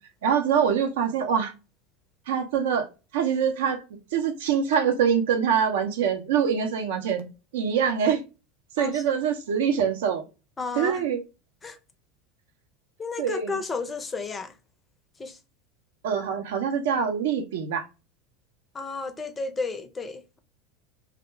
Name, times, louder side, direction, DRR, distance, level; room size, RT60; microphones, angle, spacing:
voice 1, 0.2-1.5 2.3-2.9 3.1-3.8 4.1-7.3 7.5-8.2 8.8-10.2 10.8-11.2 13.2-13.6 16.0-17.8, right 7 dB, 65° right, 0.6 m, -24 dB
voice 2, 10.6-11.1 11.6-11.8 13.0-14.6 15.2-15.4 18.7-20.4, left 4 dB, 20° left, 0.5 m, -33 dB
2.4 x 2.1 x 2.9 m
figure-of-eight pair, 80°, 0 cm